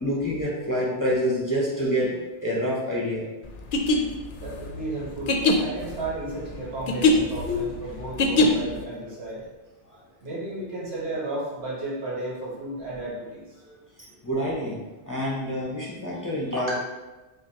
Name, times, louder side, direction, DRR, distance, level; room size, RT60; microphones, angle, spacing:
voice 1, 0.0-3.3 7.5-7.6 13.6-13.7 14.2-16.7, equal, 20° left, -6 dB, 0.6 m, -27 dB
sound 1, 3.6-8.8, left 2 dB, 60° left, 0.6 m, -23 dB
voice 2, 4.4-9.4 10.2-13.4, right 2 dB, 75° right, -6 dB, 1.4 m, -33 dB
5.2 x 2.2 x 2.8 m, 1.1 s
omnidirectional pair, 1.1 m